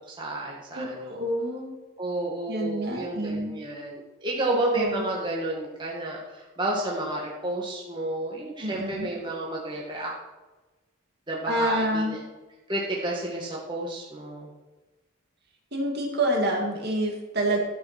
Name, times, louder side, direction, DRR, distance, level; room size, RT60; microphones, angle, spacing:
voice 1, 0.1-1.2 2.0-10.1 11.3-12.2 12.7-14.5, right 1 dB, 20° right, -3 dB, 1.9 m, -31 dB
voice 2, 0.7-1.7 2.5-3.6 4.5-4.9 8.6-9.1 11.5-12.2 15.7-17.6, right 1 dB, 50° right, 0 dB, 2.4 m, -27 dB
13.0 x 7.0 x 6.0 m, 1.1 s
head